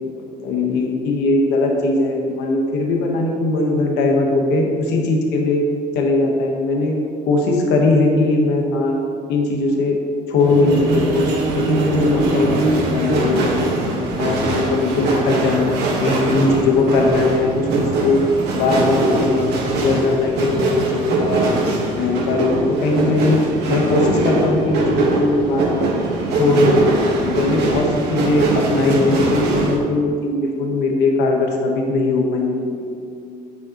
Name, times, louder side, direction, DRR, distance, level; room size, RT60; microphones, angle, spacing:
voice 1, 0.4-5.6 5.9-9.0 9.3-10.0 10.3-11.3 11.6-13.7 14.2-18.2 18.5-21.5 22.0-25.9 26.4-26.8 27.2-32.9, left 2 dB, 90° left, 1 dB, 1.2 m, -19 dB
sound 1, 10.4-29.8, right 2 dB, 75° right, 1.5 m, -21 dB
8.4 x 7.2 x 3.0 m, 2.4 s
cardioid pair, 110°, 17 cm